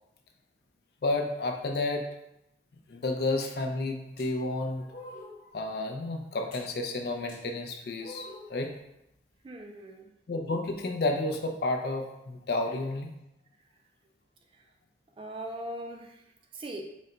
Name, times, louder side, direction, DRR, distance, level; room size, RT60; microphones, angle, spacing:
voice 1, 1.0-2.1 2.9-4.9 5.4-8.7 10.3-13.1, left 2 dB, 60° left, 3 dB, 0.4 m, -31 dB
sound 1, 3.4-3.6 4.2-4.3 4.9-5.4 6.5-6.7 7.3-7.4 8.0-8.6, left 1 dB, 45° left, 1.1 m, -45 dB
voice 2, 9.4-10.1 14.5-14.7 15.2-16.8, right 1 dB, 30° right, 3 dB, 0.3 m, -40 dB
4.0 x 2.2 x 3.8 m, 0.85 s
head